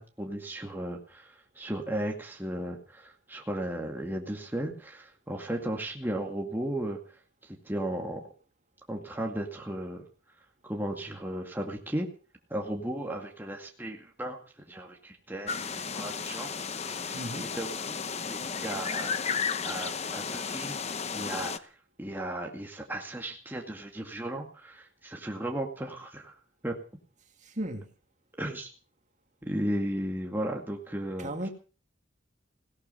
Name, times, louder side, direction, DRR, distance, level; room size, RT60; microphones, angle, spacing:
voice 1, 0.0-8.3 8.9-10.0 10.6-12.1 12.5-14.4 14.7-16.5 16.8-18.0 18.3-19.2 19.6-21.7 22.0-26.4 26.6-26.8 28.4-28.7 29.4-31.5, right 1 dB, 10° right, 1 dB, 2.2 m, -35 dB
sound 1, 15.5-21.6, left 6 dB, 35° left, 0.9 m, -33 dB
voice 2, 17.1-17.5 27.4-27.9 31.2-31.5, right 1 dB, 40° right, 5 dB, 2.6 m, -35 dB
18.0 x 13.5 x 5.7 m, 0.38 s
head